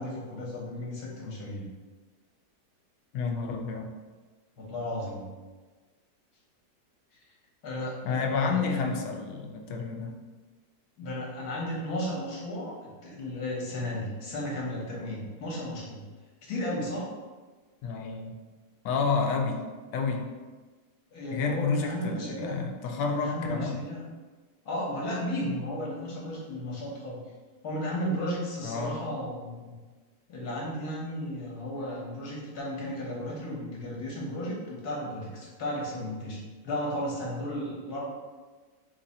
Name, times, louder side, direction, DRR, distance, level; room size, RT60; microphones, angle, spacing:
voice 1, 0.0-1.6 4.6-5.2 7.6-8.9 11.0-16.0 16.4-17.1 21.1-22.5 23.0-24.0 24.6-27.2 27.6-29.7 30.3-38.0, left 1 dB, 65° left, -4 dB, 1.5 m, -34 dB
voice 2, 3.1-3.9 8.0-10.2 17.8-18.3 18.8-19.7 19.9-20.3 21.3-23.8 28.6-29.0, left 4 dB, 90° left, 3 dB, 1.2 m, -30 dB
3.8 x 2.6 x 4.1 m, 1.3 s
omnidirectional pair, 1.8 m